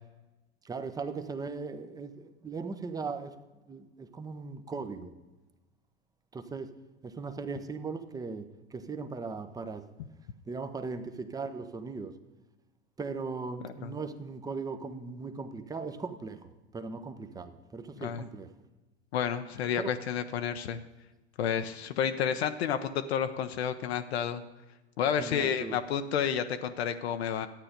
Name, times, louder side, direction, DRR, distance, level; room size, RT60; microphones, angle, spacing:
voice 1, 0.7-2.1 2.4-3.3 3.7-5.1 6.3-6.7 7.0-8.5 8.7-9.8 10.5-12.1 13.0-16.4 16.7-18.5 19.8-19.9 25.2-25.8, right 4 dB, 10° right, 10 dB, 0.7 m, -38 dB
voice 2, 13.6-14.0 18.0-18.2 19.1-20.8 21.4-24.4 25.0-27.5, left 8 dB, 65° left, 8 dB, 0.7 m, -30 dB
12.0 x 8.8 x 5.1 m, 1.1 s
hypercardioid pair, 95°, 33 cm